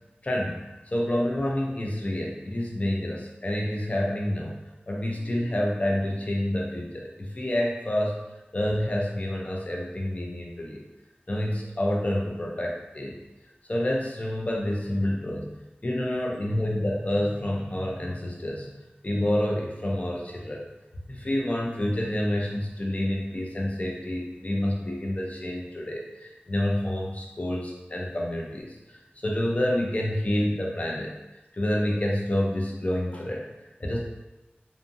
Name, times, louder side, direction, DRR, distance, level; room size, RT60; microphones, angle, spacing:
voice 1, 0.2-4.6 4.9-8.1 8.5-10.9 11.3-13.2 13.7-15.5 15.8-18.7 19.0-20.6 21.1-31.1 31.5-33.5 33.8-34.0, left 1 dB, 40° left, -1 dB, 0.5 m, -28 dB
2.6 x 2.6 x 2.5 m, 1.0 s
wide cardioid pair, 50°, 4 cm